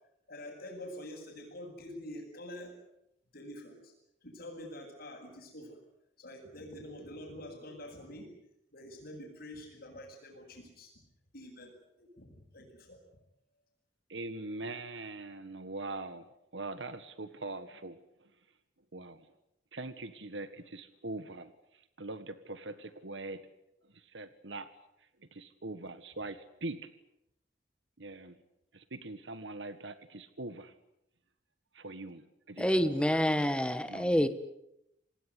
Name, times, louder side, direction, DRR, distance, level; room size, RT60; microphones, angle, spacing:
voice 1, 0.3-2.7 3.3-3.9 4.2-5.8 6.2-8.3 8.7-10.9 11.3-13.0, left 1 dB, 60° left, 7.5 m, -46 dB
voice 2, 14.1-16.3 16.5-18.3 18.9-19.3 19.7-23.4 23.8-24.7 25.2-26.9 28.0-28.4 28.7-30.7 31.7-33.0 33.9-34.3, right 2 dB, 85° right, 1.6 m, -42 dB
voice 3, 32.6-34.3, equal, 5° left, 1.6 m, -27 dB
27.5 x 19.5 x 9.6 m
head